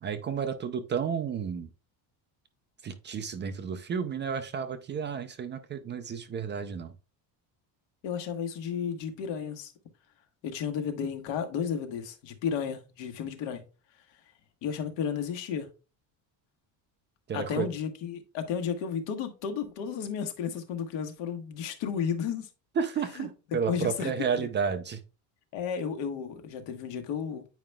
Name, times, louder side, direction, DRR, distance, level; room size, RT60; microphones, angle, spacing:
voice 1, 0.0-1.7 2.8-6.9 17.3-17.7 22.8-25.0, right 6 dB, 25° right, 0.4 m, -31 dB
voice 2, 8.0-9.7 10.4-13.6 14.6-15.7 17.3-22.5 23.2-23.3 23.7-24.5 25.5-27.4, left 7 dB, 80° left, 1.4 m, -33 dB
9.2 x 4.9 x 2.2 m
cardioid pair, 160°, 43 cm